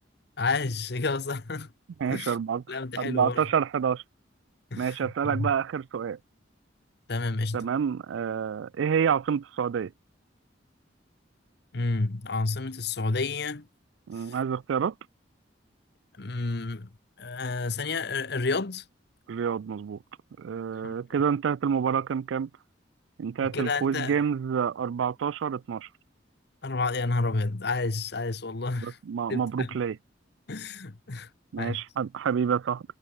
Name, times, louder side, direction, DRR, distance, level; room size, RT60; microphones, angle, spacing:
voice 1, 0.4-1.7 2.1-2.4 2.7-3.4 4.7-5.5 7.1-7.6 11.7-13.7 14.2-14.4 16.2-16.9 17.2-18.8 20.8-20.9 23.4-24.2 26.6-29.0 29.3-29.8 30.5-31.3 31.6-31.8, left 3 dB, 60° left, 1.1 m, -30 dB
voice 2, 2.0-4.0 4.8-6.2 7.5-9.9 14.1-14.9 19.3-20.0 20.4-22.5 23.2-25.9 28.8-30.0 31.5-32.8, right 7 dB, 85° right, 0.4 m, -28 dB
head